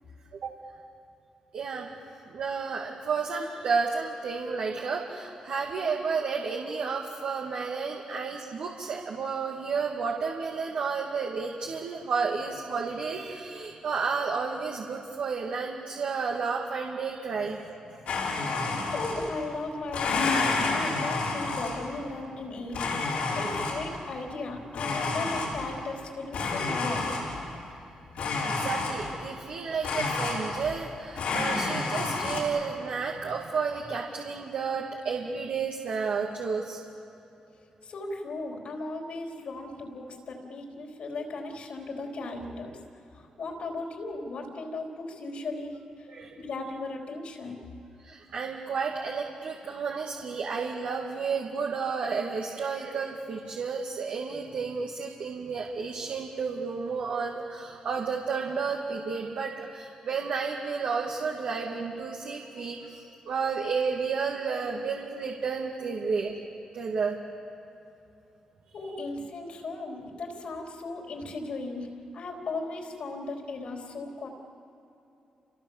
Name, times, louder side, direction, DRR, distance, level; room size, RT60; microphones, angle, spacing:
voice 1, 1.5-1.9 2.3-17.7 18.1-18.2 28.4-36.8 46.1-46.4 48.0-66.3 66.7-67.2, right 5 dB, 70° right, -1 dB, 2.2 m, -31 dB
Domestic sounds home sounds, 18.1-19.5 19.9-22.0 22.7-24.0 24.7-25.9 26.3-27.5 28.1-29.3 29.8-30.9 31.1-32.4, left 3 dB, 90° left, 6.6 m, -30 dB
voice 2, 18.7-22.9 23.3-27.2 37.8-42.7 43.1-46.1 46.4-47.6 68.7-74.3, left 2 dB, 65° left, 1 dB, 4.2 m, -37 dB
29.5 x 26.5 x 7.4 m, 2.9 s
cardioid pair, 110°, 2 cm